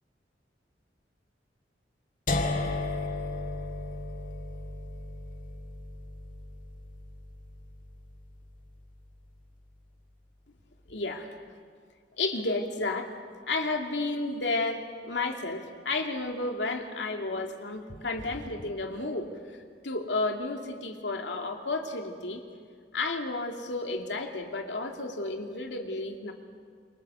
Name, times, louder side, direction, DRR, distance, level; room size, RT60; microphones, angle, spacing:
sound 1, 2.3-8.2, left 2 dB, 50° left, 2.0 m, -34 dB
voice 1, 10.9-11.4 12.2-13.1 13.5-22.4 22.9-26.3, left 2 dB, 90° left, 3 dB, 2.7 m, -32 dB
28.5 x 24.0 x 7.0 m, 2.1 s
head